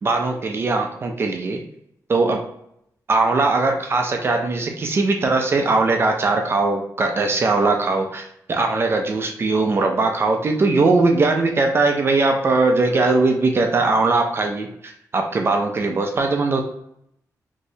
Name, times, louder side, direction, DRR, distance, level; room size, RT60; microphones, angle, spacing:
voice 1, 0.0-1.6 2.1-2.4 3.1-16.6, right 3 dB, 35° right, 3 dB, 0.4 m, -20 dB
3.0 x 2.7 x 2.7 m, 0.74 s
wide cardioid pair, 165°, 7 cm